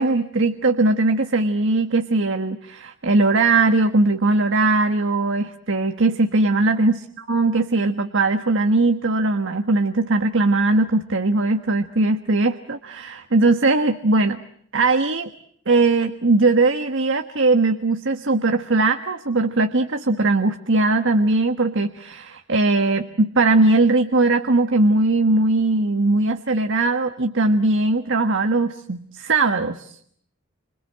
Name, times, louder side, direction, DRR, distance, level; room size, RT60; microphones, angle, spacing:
voice 1, 0.0-14.4 14.7-15.3 15.7-30.0, right 2 dB, 65° right, 7 dB, 1.4 m, -20 dB
29.5 x 26.0 x 7.5 m, 0.65 s
head